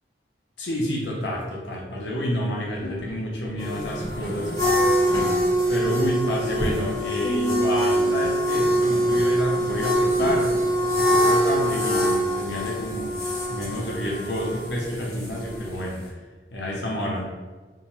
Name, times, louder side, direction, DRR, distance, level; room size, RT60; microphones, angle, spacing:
voice 1, 0.6-5.2 5.7-13.1 13.5-16.0 16.5-17.2, equal, 85° left, -2 dB, 0.7 m, -29 dB
sound 1, 2.7-8.6 9.4-9.5 9.9-10.6, right 1 dB, 50° left, 0.5 m, -34 dB
sound 2, 3.6-16.0, equal, 20° left, 0.8 m, -24 dB
2.7 x 2.2 x 3.0 m, 1.3 s
head